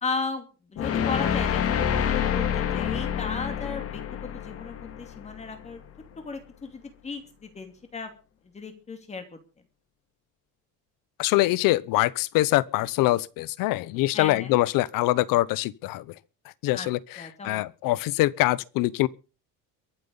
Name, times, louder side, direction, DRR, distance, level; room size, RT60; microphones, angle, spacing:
voice 1, 0.0-5.8 6.2-8.1 8.5-9.2 14.1-14.6 16.7-16.9 17.2-17.9, left 4 dB, 20° left, 2.7 m, -36 dB
sound 1, 0.8-5.8, left 8 dB, 45° left, 2.2 m, -28 dB
voice 2, 11.2-16.1 16.6-19.1, left 17 dB, 90° left, 0.9 m, -24 dB
23.0 x 8.0 x 5.4 m
cardioid pair, 180°, 32 cm